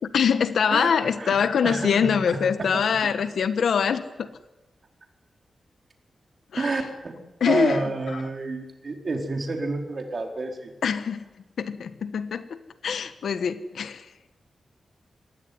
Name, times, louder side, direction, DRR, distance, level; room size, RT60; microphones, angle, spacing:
voice 1, 0.0-4.3 6.5-6.7 7.4-7.8 8.1-8.2 10.8-11.2 11.6-14.0, left 7 dB, 80° left, 11 dB, 1.4 m, -24 dB
voice 2, 0.7-1.4 1.6-3.1 6.6-10.7, right 3 dB, 40° right, 3 dB, 4.2 m, -30 dB
25.5 x 19.5 x 9.5 m, 1.1 s
wide cardioid pair, 135°, 0 cm